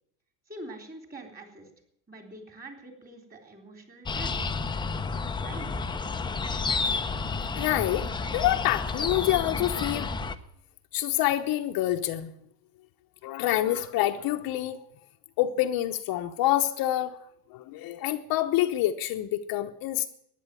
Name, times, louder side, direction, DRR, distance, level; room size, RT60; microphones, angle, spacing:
voice 1, 0.5-1.7 2.1-4.3 5.4-5.7, right 2 dB, 20° right, 4 dB, 3.8 m, -44 dB
sound 1, 4.1-10.4, left 4 dB, 10° left, 0.6 m, -31 dB
voice 2, 7.5-8.1 8.3-10.1 10.9-12.3 13.2-14.9 15.4-17.2 17.5-20.1, left 13 dB, 50° left, 6 dB, 0.9 m, -27 dB
14.5 x 10.0 x 9.0 m, 0.72 s
supercardioid pair, 120°, 46 cm